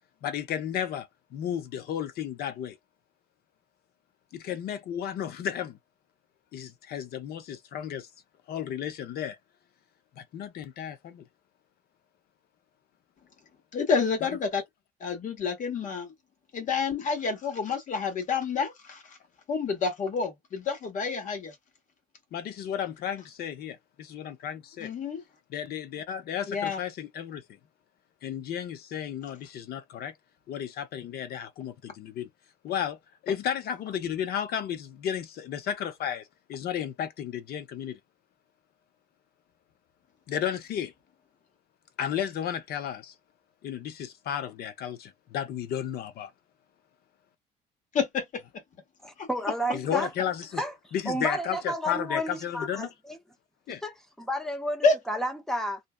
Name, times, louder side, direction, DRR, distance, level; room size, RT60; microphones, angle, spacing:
voice 1, 0.2-2.8 4.3-5.8 6.5-8.1 8.5-9.4 10.2-11.2 22.3-24.9 25.5-27.4 28.2-30.1 30.5-32.3 32.6-33.0 33.2-38.0 40.3-40.9 42.0-43.1 43.6-46.3 49.7-50.6 50.9-52.9 53.7-53.8, left 9 dB, 65° left, 0.7 m, -33 dB
voice 2, 13.7-14.6 15.0-16.1 16.5-19.2 19.5-21.5 24.8-25.2 26.5-26.8 47.9-48.4 49.2-49.3 54.8-54.9, left 5 dB, 50° left, 1.3 m, -28 dB
voice 3, 49.0-50.1 50.5-53.2 53.8-55.8, equal, 5° left, 0.7 m, -32 dB
2.6 x 2.2 x 2.3 m
cardioid pair, 110°, 17 cm